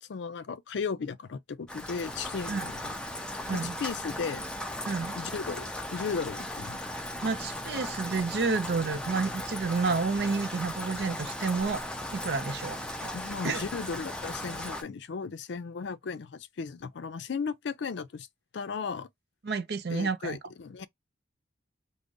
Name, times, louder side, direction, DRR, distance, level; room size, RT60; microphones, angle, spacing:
voice 1, 0.0-3.0 3.4-4.4 5.2-7.1 13.1-18.3 18.5-19.1 19.9-20.9, left 5 dB, 80° left, 0.4 m, -36 dB
Rain, 1.7-14.8, left 1 dB, 5° left, 0.5 m, -37 dB
voice 2, 4.8-5.1 7.2-11.8 12.1-13.1 13.4-13.6 19.4-20.4, right 4 dB, 60° right, 0.5 m, -30 dB
3.8 x 2.0 x 3.7 m
head